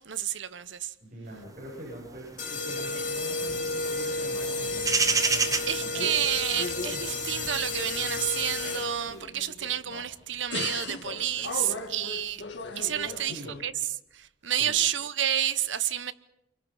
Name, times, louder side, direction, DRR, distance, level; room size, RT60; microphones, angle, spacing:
voice 1, 0.0-0.9 5.7-12.4 12.7-16.1, right 10 dB, 75° right, 0.9 m, -30 dB
voice 2, 1.0-5.6 5.9-6.1 13.0-13.5 14.4-14.7, right 1 dB, 45° right, 7.7 m, -43 dB
sound 1, 1.5-9.2, right 4 dB, 20° right, 1.2 m, -31 dB
sound 2, 2.4-9.2, left 3 dB, 40° left, 2.8 m, -32 dB
sound 3, 4.1-5.1 5.5-6.3 6.5-8.1 8.6-10.1 10.5-13.6, left 3 dB, 65° left, 2.0 m, -39 dB
27.0 x 24.0 x 5.7 m
head